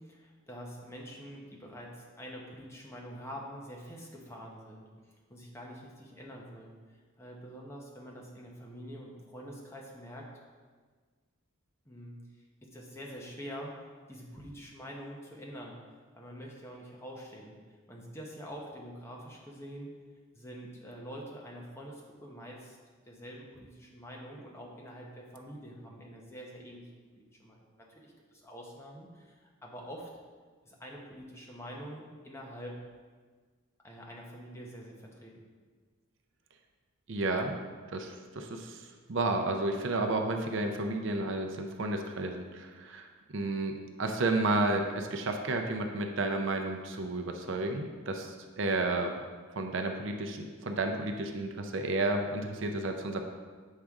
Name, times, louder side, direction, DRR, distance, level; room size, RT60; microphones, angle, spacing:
voice 1, 0.0-4.9 5.3-10.3 11.8-12.4 12.6-17.6 17.9-19.9 20.3-22.8 23.0-30.1 30.6-32.9 33.8-35.4, equal, 10° left, -2 dB, 0.8 m, -46 dB
voice 2, 37.1-37.6 37.9-49.1 49.6-53.2, right 2 dB, 60° right, 4 dB, 0.5 m, -32 dB
7.4 x 4.9 x 3.6 m, 1.5 s
head